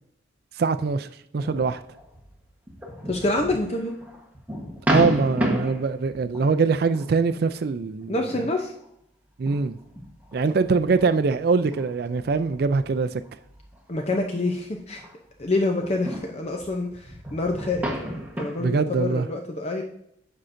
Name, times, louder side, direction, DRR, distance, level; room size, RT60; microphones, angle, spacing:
voice 1, 0.6-1.1 1.3-1.8 4.9-8.4 9.4-9.8 10.3-13.2 18.6-19.3, right 4 dB, 55° right, 0.4 m, -23 dB
sound 1, 1.4-7.0 7.5-7.7 8.3-8.9 9.5-15.1 15.4-18.7, equal, 10° right, 1.2 m, -32 dB
voice 2, 3.0-4.0 8.1-8.7 13.9-15.0 15.4-17.8 18.4-19.8, left 2 dB, 35° left, 0.6 m, -27 dB
9.9 x 6.2 x 2.6 m
head